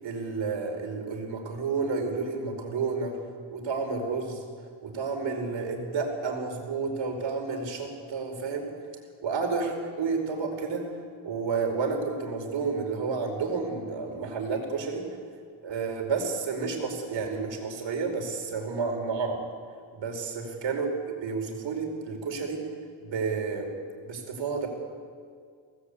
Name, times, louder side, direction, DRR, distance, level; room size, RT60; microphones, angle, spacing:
voice 1, 0.0-3.2 3.5-4.4 4.8-8.7 9.2-10.9 11.2-15.0 15.6-19.4 19.9-20.9 21.2-22.6 23.0-23.7 24.0-24.7, right 4 dB, 65° right, 3 dB, 5.0 m, -30 dB
24.0 x 18.5 x 8.6 m, 2.1 s
cardioid pair, 115°, 48 cm